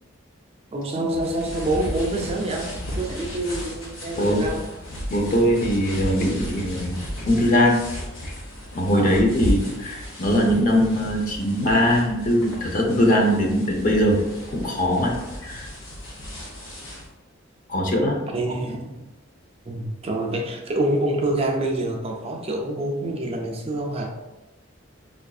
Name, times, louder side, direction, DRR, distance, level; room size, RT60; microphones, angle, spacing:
voice 1, 0.7-2.7 3.0-4.6 8.9-9.2 9.7-10.1 18.3-19.0 19.7-24.1, right 1 dB, 30° right, 1 dB, 0.4 m, -27 dB
sound 1, 1.1-17.1, equal, 80° left, 0.7 m, -34 dB
voice 2, 5.1-7.0 7.3-7.8 8.2-8.3 8.7-14.2 14.5-15.1 15.4-15.7 17.7-18.2, equal, 40° left, 0 dB, 0.6 m, -21 dB
4.7 x 2.6 x 2.3 m, 1.1 s
head